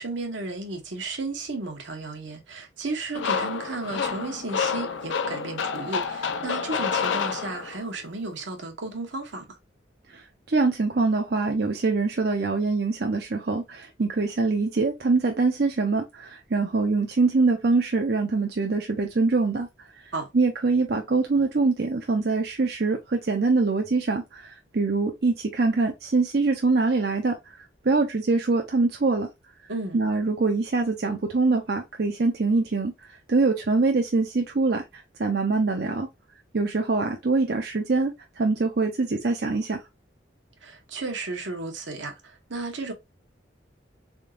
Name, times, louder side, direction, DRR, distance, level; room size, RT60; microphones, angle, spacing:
voice 1, 0.0-9.5 20.1-20.3 29.7-30.0 40.6-42.9, right 3 dB, 85° right, 1.1 m, -34 dB
sound 1, 3.1-7.9, left 6 dB, 85° left, 0.5 m, -28 dB
voice 2, 10.1-19.7 19.9-20.0 20.3-27.6 27.8-29.3 29.9-36.1 36.5-39.8, right 3 dB, 55° right, 0.6 m, -24 dB
3.8 x 3.6 x 2.4 m
head